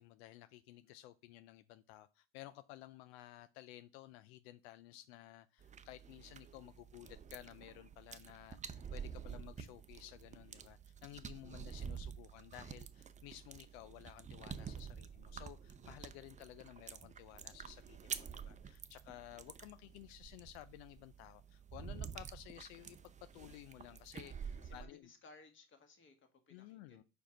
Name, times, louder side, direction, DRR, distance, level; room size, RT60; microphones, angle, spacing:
voice 1, 0.0-25.1 26.5-27.0, left 15 dB, 85° left, 0.5 m, -55 dB
sound 1, 5.6-24.8, right 7 dB, 25° right, 0.6 m, -49 dB
voice 2, 24.6-27.0, left 3 dB, 40° left, 1.8 m, -61 dB
5.0 x 4.5 x 5.0 m
supercardioid pair, 90°, 31 cm